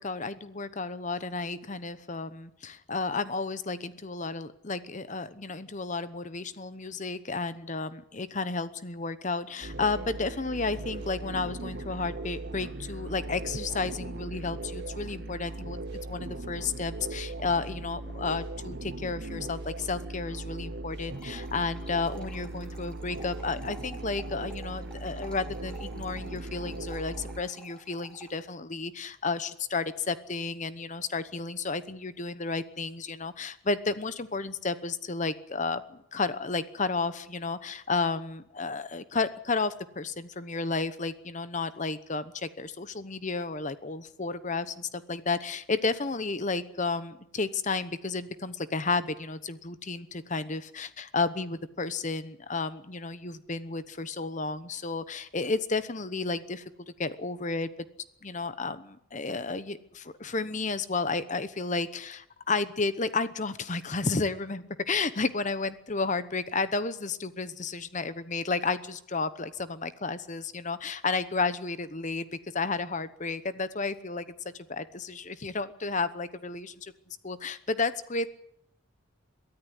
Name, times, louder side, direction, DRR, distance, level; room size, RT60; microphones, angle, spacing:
voice 1, 0.0-15.8 16.1-56.7 57.0-57.7 58.2-72.3 72.5-74.3 74.7-76.9 77.2-78.3, left 3 dB, 35° left, 13 dB, 1.0 m, -32 dB
sound 1, 9.6-27.4, right 2 dB, 50° right, 0.8 m, -38 dB
sound 2, 21.1-28.4, right 2 dB, 5° left, 3.1 m, -51 dB
23.0 x 13.5 x 9.7 m, 0.73 s
head